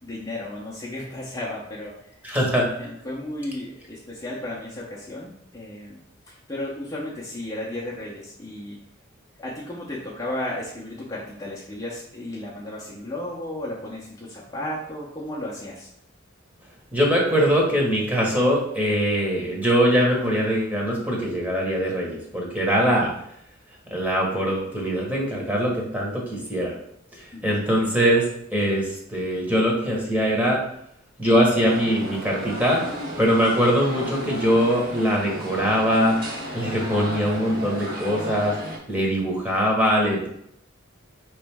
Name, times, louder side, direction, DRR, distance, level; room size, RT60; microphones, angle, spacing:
voice 1, 0.0-1.9 2.8-6.0 6.3-8.8 9.4-15.9 27.3-27.4, left 1 dB, 20° left, -6 dB, 0.7 m, -34 dB
voice 2, 2.2-2.7 16.9-23.1 23.9-26.7 27.4-28.3 28.5-30.6 31.2-32.8 33.2-36.2 36.5-38.5 38.9-40.3, equal, 10° right, -3 dB, 1.1 m, -22 dB
sound 1, 31.6-38.8, equal, 45° right, 1.5 m, -34 dB
5.0 x 3.1 x 3.5 m, 0.73 s
head